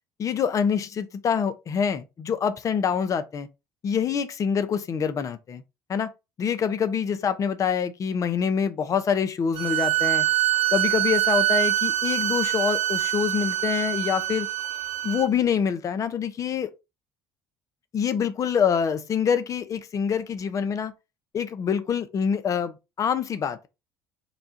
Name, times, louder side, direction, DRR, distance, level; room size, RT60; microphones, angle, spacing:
voice 1, 0.2-3.5 3.8-5.6 5.9-6.1 6.4-10.3 10.7-14.5 15.0-16.7 17.9-20.9 21.3-23.7, left 7 dB, 40° left, 0.8 m, -25 dB
sound 1, 9.6-15.3, right 15 dB, 75° right, 0.8 m, -24 dB
4.1 x 2.4 x 4.1 m
supercardioid pair, 90°, 8 cm